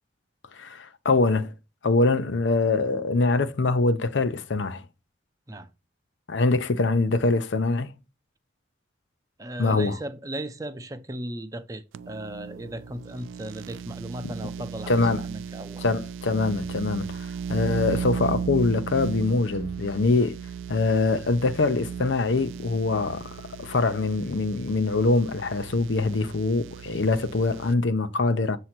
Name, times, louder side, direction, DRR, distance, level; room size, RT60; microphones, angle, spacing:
voice 1, 0.5-1.5 1.8-4.8 6.3-7.9 9.6-10.0 14.9-15.2 15.8-20.4 20.7-28.6, left 3 dB, 75° left, 0.6 m, -24 dB
voice 2, 9.4-15.8, right 1 dB, 15° right, 0.5 m, -36 dB
sound 1, 11.9-27.7, right 7 dB, 85° right, 0.3 m, -36 dB
7.6 x 2.8 x 5.9 m
head